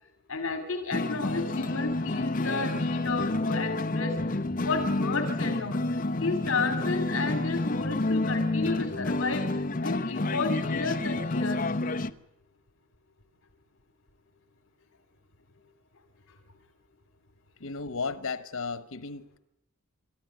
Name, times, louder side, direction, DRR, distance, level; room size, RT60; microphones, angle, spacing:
voice 1, 0.3-11.6, left 4 dB, 60° left, 2.6 m, -32 dB
sound 1, 0.9-12.1, left 2 dB, 40° left, 0.8 m, -29 dB
voice 2, 17.6-19.4, left 4 dB, 90° left, 1.1 m, -34 dB
28.0 x 13.5 x 9.4 m
head